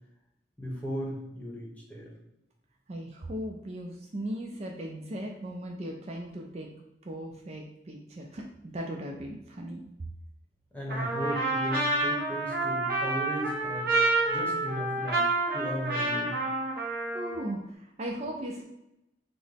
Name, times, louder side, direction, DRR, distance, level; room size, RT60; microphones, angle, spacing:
voice 1, 0.6-2.1 10.7-14.0 14.3-16.4, equal, 10° left, -3 dB, 0.9 m, -36 dB
voice 2, 2.9-6.7 7.0-9.8 17.1-18.6, right 1 dB, 35° right, 0 dB, 0.4 m, -37 dB
Trumpet, 10.9-17.5, right 2 dB, 55° right, 1.1 m, -29 dB
5.9 x 2.1 x 3.4 m, 0.86 s
head